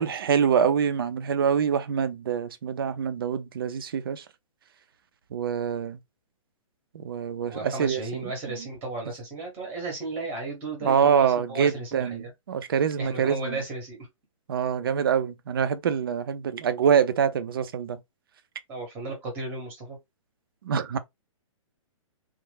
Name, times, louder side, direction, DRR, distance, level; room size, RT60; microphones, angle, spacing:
voice 1, 0.0-4.2 5.3-6.0 6.9-8.3 10.8-13.6 14.5-18.0 20.6-21.0, right 7 dB, 40° right, 0.4 m, -25 dB
voice 2, 7.4-12.3 13.0-14.1 18.7-20.0, right 3 dB, 10° right, 0.8 m, -34 dB
3.1 x 2.0 x 3.2 m
hypercardioid pair, 175°, 17 cm